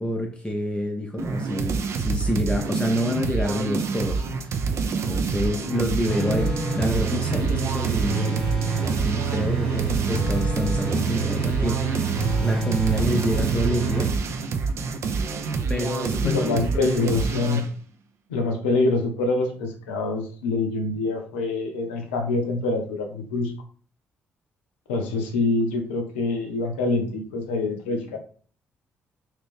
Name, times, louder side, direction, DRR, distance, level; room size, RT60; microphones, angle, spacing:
voice 1, 0.0-4.6 5.1-8.7 9.0-14.1 15.7-17.0 17.3-17.5, left 1 dB, 15° left, 2 dB, 0.6 m, -28 dB
sound 1, 1.2-17.7, right 4 dB, 45° right, 0.4 m, -27 dB
sound 2, 6.1-14.1, right 5 dB, 80° right, 1.7 m, -27 dB
voice 2, 16.2-17.6 18.3-23.5 24.9-28.2, left 3 dB, 75° left, 3 dB, 0.5 m, -25 dB
2.8 x 2.6 x 3.3 m, 0.43 s
figure-of-eight pair, 40°, 6 cm